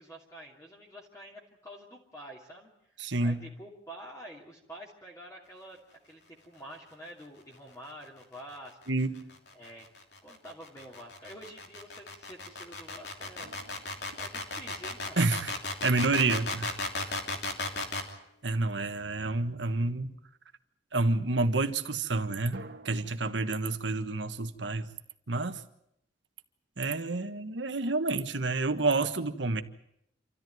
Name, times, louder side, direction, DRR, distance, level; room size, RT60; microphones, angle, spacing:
voice 1, 0.0-8.8 9.5-9.9 10.2-13.5 14.2-15.2, equal, 15° left, 2.7 m, -48 dB
voice 2, 3.0-3.4 8.9-9.3 15.2-15.5 15.8-16.7 17.0-17.1 18.4-20.1 20.9-22.6 22.8-24.9 25.3-25.6 26.8-29.6, right 3 dB, 85° right, 1.5 m, -29 dB
sound 1, 8.9-18.1, left 2 dB, 65° left, 3.1 m, -35 dB
sound 2, 13.4-15.5 22.5-23.2, right 2 dB, 70° right, 1.9 m, -49 dB
28.0 x 14.0 x 9.4 m
head